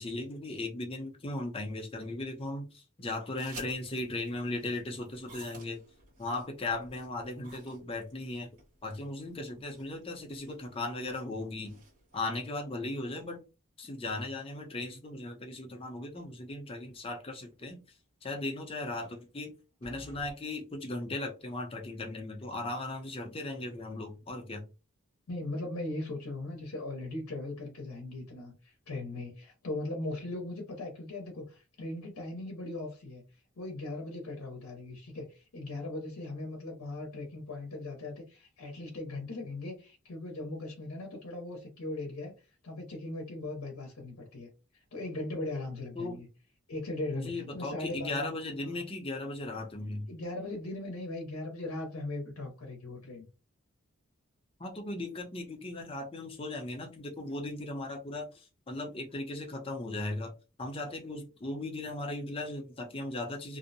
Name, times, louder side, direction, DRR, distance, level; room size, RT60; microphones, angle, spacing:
voice 1, 0.0-5.8 6.2-8.5 8.8-11.7 12.1-13.4 13.8-17.8 18.2-19.5 19.8-24.6 46.0-46.2 47.1-50.1 54.6-60.3 60.6-63.6, left 2 dB, 25° left, 0.5 m, -37 dB
sound 1, 3.4-12.2, right 2 dB, 40° right, 1.4 m, -53 dB
sound 2, 16.8-17.2 17.5-17.6 19.8-20.3, equal, 15° right, 0.7 m, -52 dB
voice 2, 25.3-46.3 46.7-48.3 48.6-48.8 50.1-53.3, left 2 dB, 90° left, 0.7 m, -39 dB
2.6 x 2.0 x 2.6 m
head